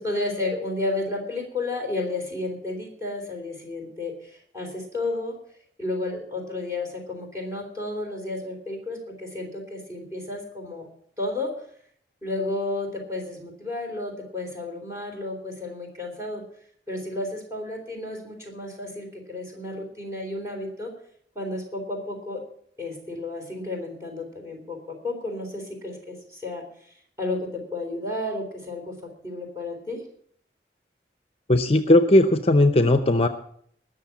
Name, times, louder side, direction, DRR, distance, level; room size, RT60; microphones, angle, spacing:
voice 1, 0.0-5.3 5.8-10.9 11.2-11.5 12.2-16.4 16.9-20.9 21.4-22.4 22.8-26.6 27.2-28.9 29.2-30.0, left 2 dB, 15° right, 1 dB, 3.8 m, -32 dB
voice 2, 31.5-33.3, left 1 dB, 35° left, 10 dB, 0.6 m, -18 dB
19.5 x 6.6 x 7.2 m, 0.64 s
head